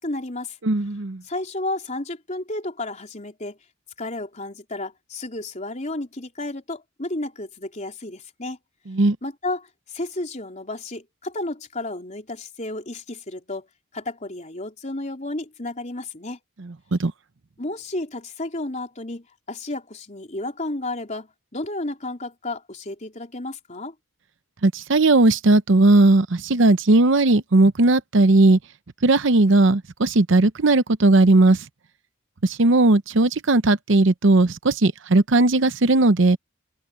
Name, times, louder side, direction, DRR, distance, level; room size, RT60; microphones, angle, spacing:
voice 1, 0.0-0.6 1.2-3.6 4.0-8.6 9.2-13.7 13.9-16.4 17.6-23.9, left 2 dB, 35° left, 3.8 m, -32 dB
voice 2, 0.6-1.2 8.9-9.2 16.9-17.1 24.6-28.6 29.0-31.6 32.4-36.4, right 2 dB, 60° right, 0.8 m, -17 dB
open air
head